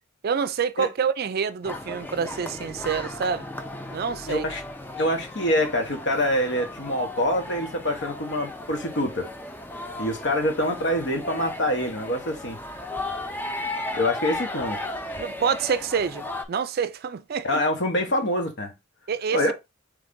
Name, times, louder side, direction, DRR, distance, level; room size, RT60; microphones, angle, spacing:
voice 1, 0.2-3.5 3.9-4.5 15.2-17.6 19.1-19.5, right 6 dB, 55° right, 0.4 m, -27 dB
sound 1, 1.6-16.4, left 2 dB, 10° left, 0.5 m, -35 dB
voice 2, 4.3-4.6 5.0-9.3 10.0-12.6 13.9-14.8 17.4-18.7 19.3-19.5, left 1 dB, 65° left, 1.1 m, -25 dB
3.9 x 3.3 x 3.6 m
head